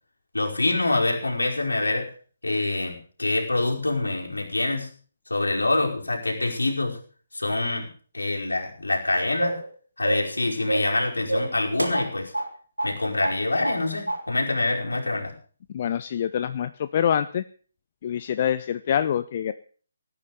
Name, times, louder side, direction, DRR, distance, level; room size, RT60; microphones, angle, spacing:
voice 1, 0.3-2.1 2.4-4.9 5.3-7.0 7.3-7.9 8.1-9.6 10.0-12.3 12.8-15.3, left 2 dB, 70° left, 0 dB, 5.1 m, -25 dB
sound 1, 9.4-9.7 10.0-10.4 10.7-11.0 11.3-12.5 12.8-13.0 13.2-13.8 14.1-14.2, right 1 dB, 80° right, 3.2 m, -28 dB
voice 2, 15.7-17.4 18.0-19.5, left 9 dB, 35° left, 13 dB, 0.6 m, -25 dB
17.5 x 9.7 x 6.8 m, 0.42 s
figure-of-eight pair, 145°, 0 cm